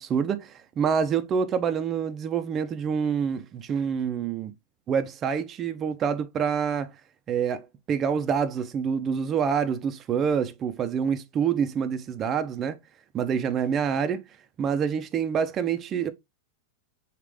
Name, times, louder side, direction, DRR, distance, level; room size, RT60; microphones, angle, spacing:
voice 1, 0.0-4.5 4.9-6.9 7.3-12.8 13.1-14.2 14.6-16.1, right 7 dB, 25° right, 0.6 m, -27 dB
5.0 x 2.5 x 3.4 m
supercardioid pair, 140°, 0 cm